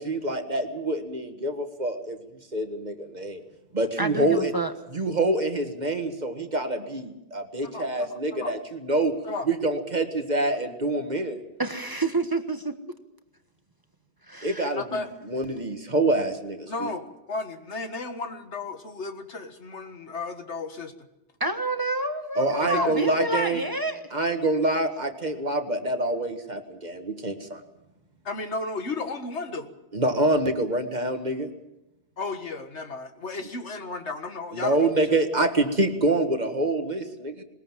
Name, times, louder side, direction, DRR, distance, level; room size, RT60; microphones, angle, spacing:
voice 1, 0.0-2.2 2.5-3.4 3.7-4.5 4.9-9.1 9.5-11.4 14.4-15.0 15.3-16.9 22.4-23.6 24.1-27.6 29.9-31.5 34.5-37.4, right 2 dB, 40° right, 6 dB, 1.8 m, -26 dB
voice 2, 4.0-4.7 11.6-12.7 14.3-14.7 21.4-24.0, right 2 dB, 20° right, 7 dB, 1.3 m, -28 dB
voice 3, 7.6-8.6 9.2-9.5 14.7-15.1 16.7-20.9 22.6-23.1 28.2-29.7 32.2-35.2, left 3 dB, 90° left, 7 dB, 2.0 m, -34 dB
20.5 x 20.5 x 7.4 m, 0.92 s
omnidirectional pair, 1.1 m